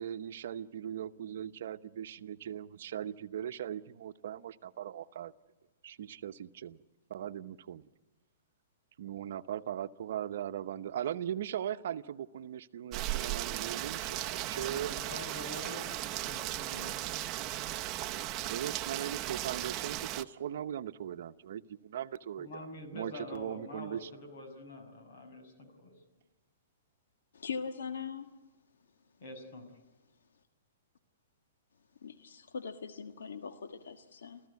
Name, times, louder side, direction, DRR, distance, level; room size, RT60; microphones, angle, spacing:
voice 1, 0.0-5.3 5.8-6.8 7.1-7.9 9.0-15.0 18.5-22.7 22.9-24.1, right 10 dB, 65° right, 11 dB, 0.9 m, -39 dB
Rain, 12.9-20.2, right 14 dB, 25° right, 0.9 m, -36 dB
voice 2, 13.7-14.1 14.5-17.2 22.4-25.9 29.2-29.7, left 2 dB, 55° left, 6 dB, 6.2 m, -46 dB
voice 3, 27.3-28.3 32.0-34.4, left 6 dB, 85° left, 7 dB, 1.5 m, -41 dB
30.0 x 14.5 x 9.6 m, 1.2 s
hypercardioid pair, 150°, 0 cm